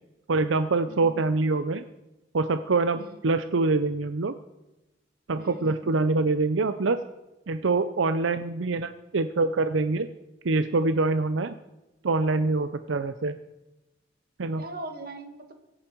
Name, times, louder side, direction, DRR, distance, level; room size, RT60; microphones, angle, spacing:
voice 1, 0.3-1.8 2.3-4.3 5.3-7.0 7.5-10.1 10.4-11.6 12.0-13.4 14.4-14.6, right 3 dB, 85° right, 10 dB, 0.6 m, -25 dB
voice 2, 0.9-1.2 3.0-3.2 5.4-6.0 14.6-15.5, right 2 dB, 50° right, 4 dB, 2.1 m, -41 dB
23.0 x 9.1 x 4.6 m, 1.0 s
head